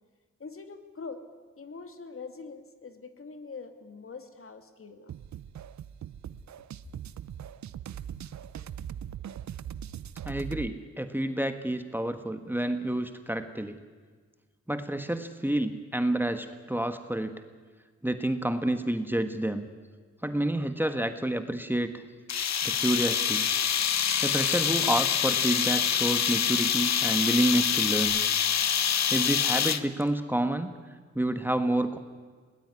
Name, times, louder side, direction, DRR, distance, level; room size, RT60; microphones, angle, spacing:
voice 1, 0.4-1.2 1.6-5.1, left 4 dB, 50° left, 8 dB, 2.4 m, -43 dB
sound 1, 5.1-10.7, right 9 dB, 70° right, 0.7 m, -40 dB
voice 2, 10.2-13.8 14.7-17.3 18.0-19.7 20.2-21.9 22.6-23.5 24.2-28.2 29.1-30.7 31.1-32.0, right 1 dB, 5° right, 8 dB, 1.4 m, -29 dB
sound 2, 22.3-30.0, left 8 dB, 65° left, 1.1 m, -26 dB
21.0 x 18.5 x 9.8 m, 1.5 s
cardioid pair, 80°, 29 cm